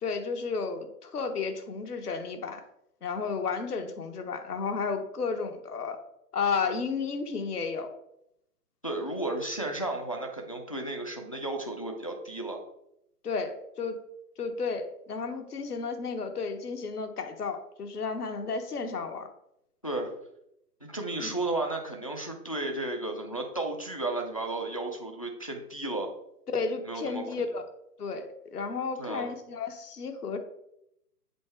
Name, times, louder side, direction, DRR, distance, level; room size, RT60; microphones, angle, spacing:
voice 1, 0.0-2.6 3.0-6.0 6.3-7.9 13.2-14.0 14.4-19.3 21.2-21.4 26.5-27.6 28.0-30.4, left 5 dB, 70° left, 6 dB, 1.2 m, -32 dB
voice 2, 8.8-12.6 19.8-20.1 20.8-26.1 26.9-27.2 29.0-29.3, right 2 dB, 25° left, 2 dB, 0.4 m, -33 dB
7.6 x 3.8 x 4.5 m, 0.80 s
figure-of-eight pair, 125°, 48 cm